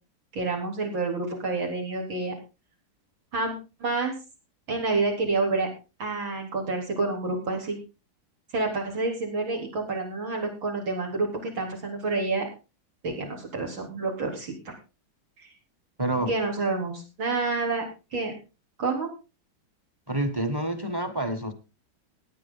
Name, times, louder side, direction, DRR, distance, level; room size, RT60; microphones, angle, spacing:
voice 1, 0.3-2.3 3.3-4.1 4.7-5.7 6.0-7.8 8.5-12.5 13.0-14.7 15.4-15.5 16.3-17.9 18.1-18.3 18.8-19.1, right 3 dB, 80° right, 0 dB, 4.7 m, -28 dB
voice 2, 16.0-16.3 20.1-21.5, right 1 dB, 15° right, 10 dB, 1.1 m, -28 dB
17.0 x 9.8 x 4.0 m, 0.30 s
omnidirectional pair, 2.1 m